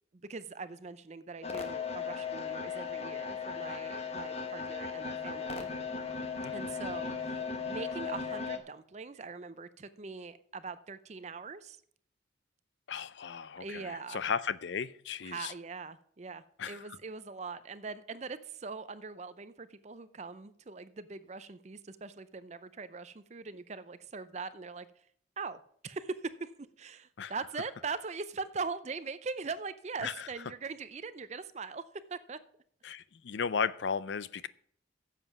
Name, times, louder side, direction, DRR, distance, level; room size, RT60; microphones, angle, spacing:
voice 1, 0.3-5.7 6.5-11.8 13.6-14.3 15.2-24.9 25.4-26.5 26.8-31.8 32.1-32.4, right 4 dB, 35° right, 0.5 m, -41 dB
sound 1, 1.4-8.6, left 5 dB, 30° left, 1.0 m, -37 dB
voice 2, 12.9-15.5 16.6-16.8 27.2-27.3 30.0-30.3 32.8-34.5, left 6 dB, 65° left, 0.5 m, -35 dB
10.5 x 7.5 x 6.0 m
head